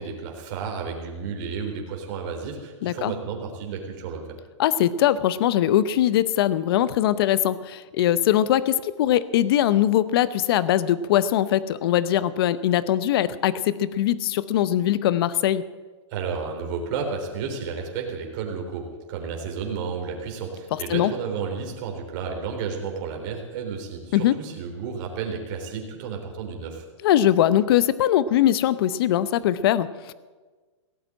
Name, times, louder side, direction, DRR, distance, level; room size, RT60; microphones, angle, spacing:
voice 1, 0.0-4.2 16.1-26.8, right 5 dB, 40° right, 2 dB, 3.6 m, -32 dB
voice 2, 2.8-3.1 4.6-15.6 20.7-21.1 24.1-24.4 27.0-30.1, left 11 dB, 50° left, 16 dB, 0.8 m, -21 dB
17.0 x 8.1 x 8.7 m, 1.3 s
hypercardioid pair, 150°, 16 cm